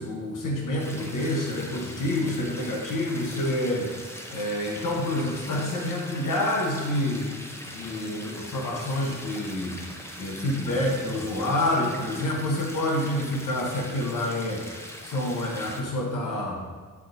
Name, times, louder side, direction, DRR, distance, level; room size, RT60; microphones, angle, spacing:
voice 1, 0.0-7.3 7.7-9.8 10.2-16.6, left 1 dB, 85° left, -2 dB, 1.2 m, -28 dB
sound 1, 0.8-15.8, equal, 10° left, 0.7 m, -41 dB
7.6 x 3.6 x 4.0 m, 1.5 s
cardioid pair, 110°, 31 cm